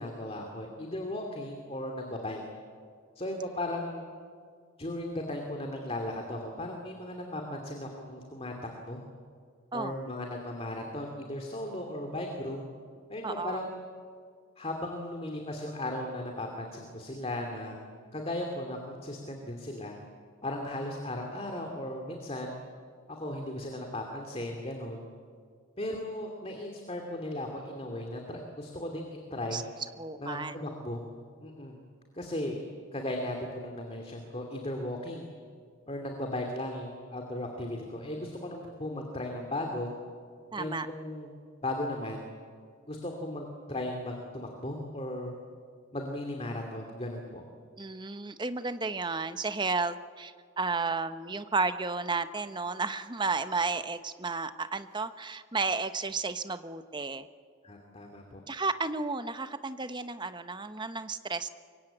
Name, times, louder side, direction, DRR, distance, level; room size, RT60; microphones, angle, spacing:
voice 1, 0.0-2.4 3.2-4.1 4.8-8.5 8.9-9.0 9.7-12.6 13.1-13.8 14.6-17.8 18.1-20.0 20.4-22.6 23.1-25.1 25.8-29.0 29.3-29.6 30.2-31.0 31.4-31.8 32.1-32.6 32.9-35.3 35.9-39.9 40.6-41.3 41.6-42.2 42.9-45.3 45.9-47.4 57.6-58.4, left 1 dB, 30° left, 2 dB, 2.6 m, -36 dB
voice 2, 13.2-13.6 29.5-29.6 30.0-30.5 40.5-40.9 47.8-57.3 58.5-61.5, right 4 dB, 20° right, 10 dB, 0.9 m, -32 dB
25.0 x 22.5 x 8.9 m, 2.1 s
head